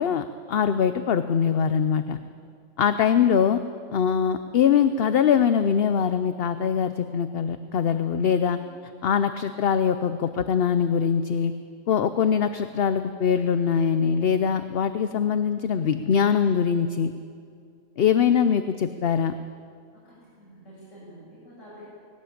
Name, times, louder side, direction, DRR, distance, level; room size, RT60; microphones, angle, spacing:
voice 1, 0.0-2.2 2.8-3.6 3.9-8.6 9.0-11.5 11.9-17.1 18.0-19.3, left 7 dB, 55° left, 10 dB, 0.8 m, -22 dB
voice 2, 20.0-21.8, equal, 70° left, -10 dB, 7.9 m, -48 dB
20.5 x 17.5 x 8.7 m, 2.3 s
omnidirectional pair, 1.4 m